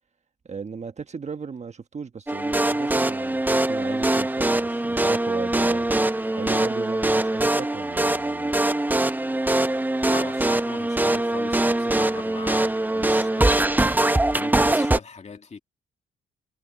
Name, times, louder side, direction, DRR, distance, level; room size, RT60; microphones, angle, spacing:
voice 1, 0.4-6.0 6.3-8.5, right 5 dB, 35° right, 1.3 m, -36 dB
sound 1, 2.3-15.0, right 1 dB, 10° right, 0.8 m, -22 dB
voice 2, 10.0-15.6, left 5 dB, 35° left, 2.5 m, -40 dB
cardioid pair, 90°, 20 cm